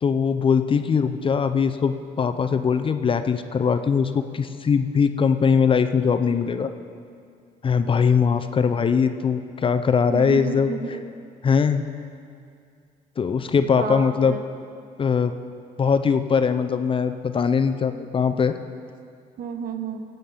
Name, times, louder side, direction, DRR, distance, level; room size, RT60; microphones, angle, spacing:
voice 1, 0.0-6.7 7.6-10.7 11.4-11.8 13.2-14.4 15.0-15.3 15.8-18.5, left 6 dB, 30° left, 9 dB, 0.6 m, -21 dB
voice 2, 10.1-11.1 13.6-14.4 19.4-20.0, right 6 dB, 55° right, 6 dB, 1.1 m, -31 dB
16.0 x 7.9 x 5.7 m, 2.3 s
cardioid pair, 110°, 17 cm